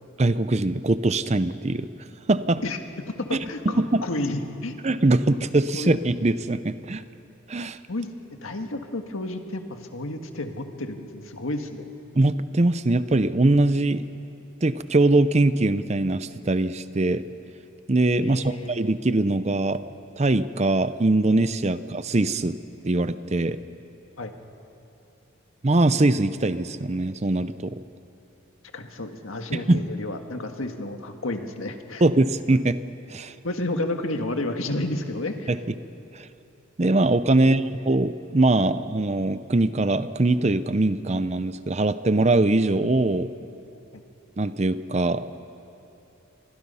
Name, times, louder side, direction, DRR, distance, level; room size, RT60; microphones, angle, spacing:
voice 1, 0.2-1.9 2.3-2.6 3.8-4.0 4.8-7.0 7.5-7.8 12.2-14.1 14.6-17.2 17.9-19.8 20.2-22.6 22.8-23.6 25.6-27.8 29.5-29.8 32.0-32.8 33.1-33.3 35.5-35.6 36.1-36.3 36.8-43.3 44.4-45.2, right 2 dB, 30° right, 13 dB, 0.6 m, -22 dB
voice 2, 3.1-4.7 5.3-5.4 5.7-6.0 7.9-8.1 8.4-11.8 18.2-18.8 24.2-24.3 28.7-32.1 33.4-35.5 37.3-37.8 43.9-44.0, left 2 dB, 85° left, 5 dB, 1.8 m, -31 dB
29.0 x 24.0 x 5.6 m, 2.8 s
head